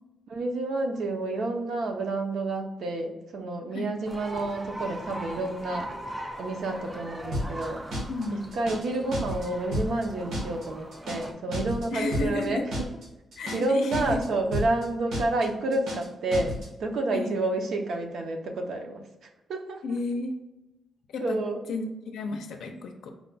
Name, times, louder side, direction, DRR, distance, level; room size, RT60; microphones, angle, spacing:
voice 1, 0.3-5.9 6.4-7.8 8.3-12.6 13.5-16.5 16.8-19.0 19.5-19.8 21.2-21.6, right 2 dB, 55° right, 4 dB, 0.6 m, -29 dB
sound 1, 4.0-11.3, right 1 dB, 10° right, 0.3 m, -40 dB
sound 2, 7.3-7.7 7.9-8.3 8.5-8.9 9.1-9.5 9.7-10.1 10.3-10.7 10.9-11.3 11.5-11.9 12.1-12.5 12.7-13.1 13.3-13.7 13.9-14.3 14.5-14.9 15.1-15.5 15.7-16.1 16.3-16.7, equal, 75° right, 1.2 m, -31 dB
voice 2, 8.1-8.5 11.9-12.6 13.4-14.2 17.1-17.4 19.8-20.4 21.1-21.4 21.7-23.1, left 3 dB, 75° left, 4 dB, 0.5 m, -32 dB
4.6 x 2.2 x 3.9 m, 0.98 s
wide cardioid pair, 180°, 0 cm